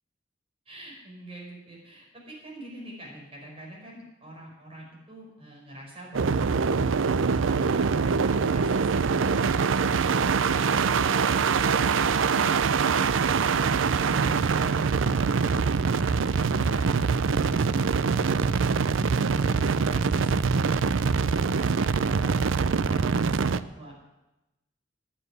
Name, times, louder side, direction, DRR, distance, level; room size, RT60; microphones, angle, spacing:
voice 1, 0.6-6.5 19.3-20.7 21.3-23.9, right 1 dB, 30° right, -2 dB, 4.9 m, -46 dB
sound 1, 6.1-23.6, right 5 dB, 90° right, 0.5 m, -24 dB
10.0 x 9.8 x 9.5 m, 1.0 s
head